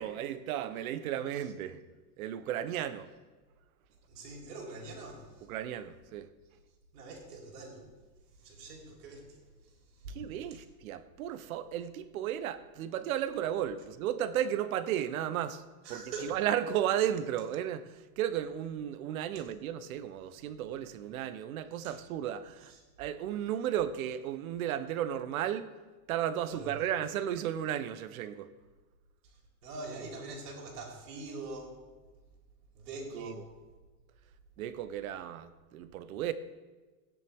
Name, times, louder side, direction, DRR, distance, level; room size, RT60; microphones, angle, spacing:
voice 1, 0.0-1.8 2.2-3.1 5.5-6.3 10.1-22.7 23.0-25.8 26.1-28.5 33.1-33.3 34.6-36.3, right 10 dB, 65° right, 0.9 m, -34 dB
voice 2, 4.0-5.5 6.9-7.9 8.3-10.2 10.5-10.6 15.8-16.3 19.4-19.5 21.8-22.0 22.6-22.8 26.5-26.9 29.2-31.8 32.7-33.4, right 2 dB, 90° right, 3.9 m, -44 dB
17.0 x 9.8 x 3.6 m
supercardioid pair, 170°, 45 cm